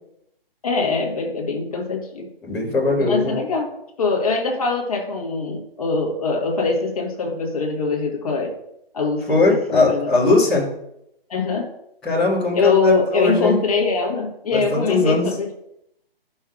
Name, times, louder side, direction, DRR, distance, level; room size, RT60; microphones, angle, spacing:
voice 1, 0.6-2.3 3.0-3.7 4.0-8.5 8.9-9.4 9.7-10.1 11.3-11.7 12.5-15.5, left 4 dB, 40° left, 0 dB, 1.5 m, -22 dB
voice 2, 2.4-3.3 9.3-10.7 12.0-13.6 14.5-15.4, left 3 dB, ahead, -16 dB, 1.0 m, -20 dB
12.5 x 5.6 x 2.4 m, 0.79 s
hypercardioid pair, 170°, 30 cm